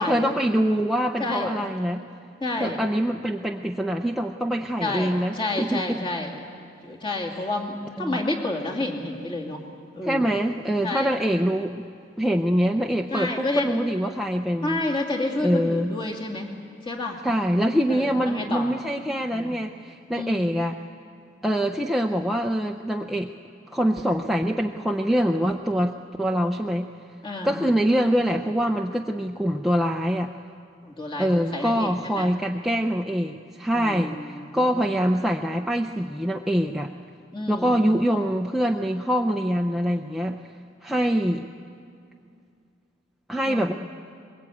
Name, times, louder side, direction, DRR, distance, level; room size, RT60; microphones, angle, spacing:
voice 1, 0.0-2.0 2.6-6.0 7.3-7.5 8.0-8.2 10.0-11.8 12.2-14.8 15.4-15.9 17.2-20.8 21.4-23.3 23.7-26.9 27.4-30.3 31.2-36.9 37.5-40.4 40.8-41.5 43.3-43.7, equal, ahead, 1 dB, 0.5 m, -24 dB
voice 2, 1.2-1.5 2.4-2.8 4.8-6.3 6.8-9.6 9.9-10.3 10.8-11.1 13.1-13.8 14.6-16.5 16.9-17.2 17.9-18.6 19.3-19.5 20.1-20.4 27.2-27.6 30.8-32.3 33.7-34.8 37.3-37.8 43.5-43.7, left 2 dB, 25° left, -1 dB, 2.6 m, -30 dB
22.5 x 21.5 x 8.5 m, 2.3 s
head